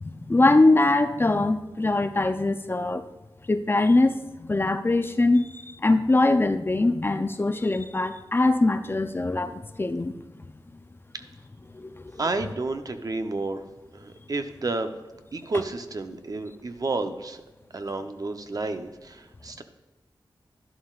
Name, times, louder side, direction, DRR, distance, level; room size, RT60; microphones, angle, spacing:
voice 1, 0.0-3.0 3.5-10.1 11.7-12.2, left 2 dB, 25° left, 9 dB, 0.5 m, -22 dB
voice 2, 12.2-13.6 13.9-14.9 15.3-17.4 17.7-19.6, right 3 dB, 45° right, 7 dB, 0.7 m, -31 dB
11.0 x 11.0 x 2.4 m, 1.1 s
wide cardioid pair, 90°, 9 cm